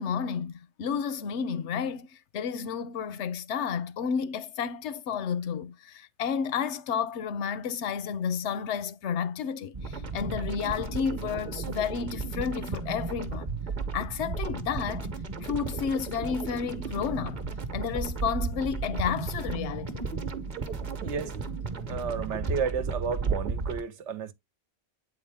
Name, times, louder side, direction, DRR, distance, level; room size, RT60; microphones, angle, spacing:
voice 1, 0.0-13.5 13.9-15.1 15.4-17.4 17.7-20.0, left 7 dB, 85° left, 0.9 m, -31 dB
sound 1, 9.7-23.8, right 4 dB, 45° right, 0.9 m, -34 dB
voice 2, 21.0-21.4 21.9-24.3, right 6 dB, 90° right, 1.1 m, -32 dB
8.5 x 3.9 x 3.4 m
omnidirectional pair, 1.2 m